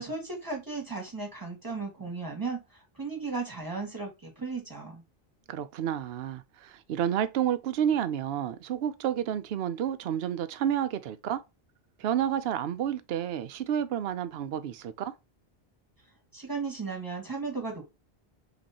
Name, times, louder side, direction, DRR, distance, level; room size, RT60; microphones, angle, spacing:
voice 1, 0.0-5.0 16.3-17.8, right 4 dB, 20° right, 1.8 m, -35 dB
voice 2, 5.5-11.4 12.0-15.1, right 9 dB, 75° right, 0.8 m, -30 dB
5.2 x 3.1 x 2.8 m
omnidirectional pair, 1.0 m